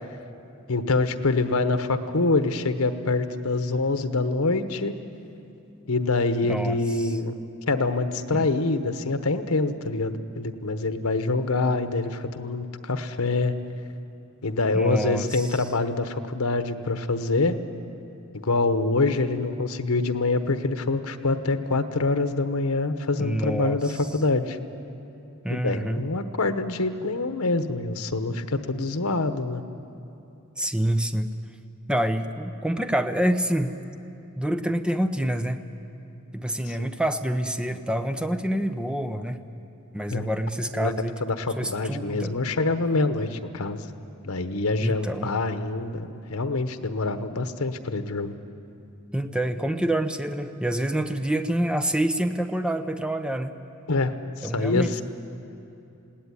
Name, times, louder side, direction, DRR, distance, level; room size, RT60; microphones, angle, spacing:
voice 1, 0.7-4.9 5.9-7.4 7.7-13.5 14.4-17.6 18.3-24.6 25.5-29.6 36.7-36.9 40.1-40.3 40.7-40.9 41.2-43.9 44.2-48.3 53.9-55.0, left 3 dB, 85° left, 9 dB, 1.1 m, -25 dB
voice 2, 6.5-6.8 8.3-8.5 14.7-15.5 23.2-23.8 25.4-26.0 30.6-31.3 31.9-33.8 34.4-35.6 36.3-39.4 39.9-41.1 41.6-42.3 44.8-45.3 49.1-53.6 54.4-55.0, right 1 dB, 5° right, 8 dB, 0.8 m, -27 dB
20.5 x 17.0 x 9.8 m, 2.8 s
head